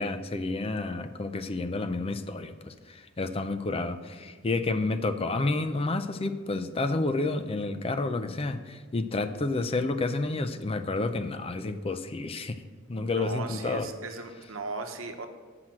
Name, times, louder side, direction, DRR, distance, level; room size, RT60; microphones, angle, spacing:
voice 1, 0.0-12.6 12.9-13.9, left 3 dB, 30° left, 9 dB, 0.5 m, -30 dB
voice 2, 13.1-15.3, right 3 dB, 75° right, 6 dB, 1.0 m, -37 dB
7.9 x 5.8 x 7.5 m, 1.5 s
head